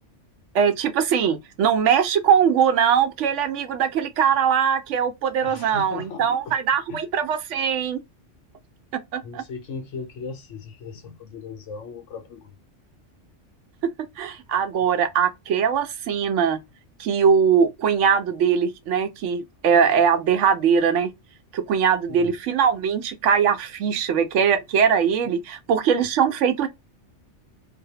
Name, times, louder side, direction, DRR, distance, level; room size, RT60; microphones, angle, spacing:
voice 1, 0.5-8.0 8.9-9.4 13.8-16.6 17.0-21.1 21.5-26.7, right 7 dB, 75° right, 0.9 m, -21 dB
voice 2, 5.4-6.6 6.9-7.0 9.2-12.5 22.1-22.3, left 4 dB, 75° left, 1.1 m, -37 dB
2.7 x 2.1 x 2.7 m
omnidirectional pair, 1.3 m